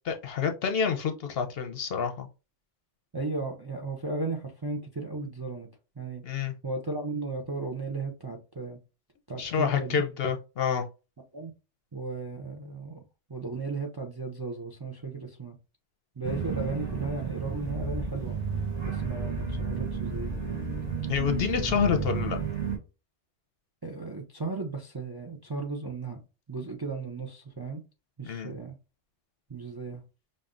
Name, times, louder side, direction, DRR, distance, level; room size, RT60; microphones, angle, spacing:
voice 1, 0.0-2.3 6.2-6.5 9.4-10.8 21.1-22.4 28.2-28.5, left 6 dB, 60° left, 0.8 m, -28 dB
voice 2, 3.1-5.7 6.0-6.2 6.6-8.8 9.3-10.0 11.3-11.5 11.9-13.0 13.3-15.6 16.2-18.4 18.9-20.6 23.8-26.2 26.5-27.8 28.2-28.8 29.5-30.0, right 3 dB, 30° right, 0.4 m, -35 dB
sound 1, 16.2-22.8, right 5 dB, 45° right, 2.2 m, -32 dB
5.3 x 2.6 x 2.4 m
omnidirectional pair, 1.3 m